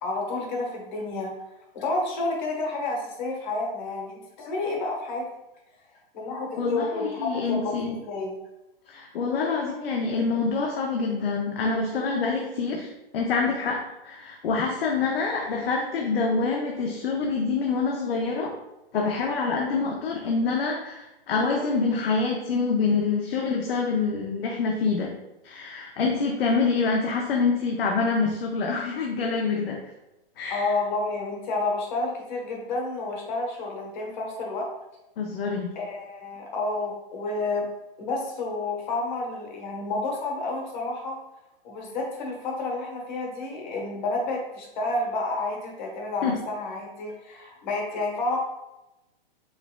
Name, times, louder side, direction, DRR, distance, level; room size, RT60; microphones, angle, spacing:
voice 1, 0.0-1.3 1.7-5.3 6.1-8.3 30.5-34.7 35.7-37.7 38.0-41.1 41.6-48.4, left 2 dB, 50° left, 0 dB, 1.2 m, -30 dB
voice 2, 6.6-8.0 8.9-18.5 18.9-25.1 25.4-29.8 30.4-30.7 35.2-35.7 46.2-46.4, left 4 dB, 75° left, 0 dB, 0.7 m, -26 dB
4.7 x 3.4 x 2.3 m, 0.94 s
hypercardioid pair, 160°, 30 cm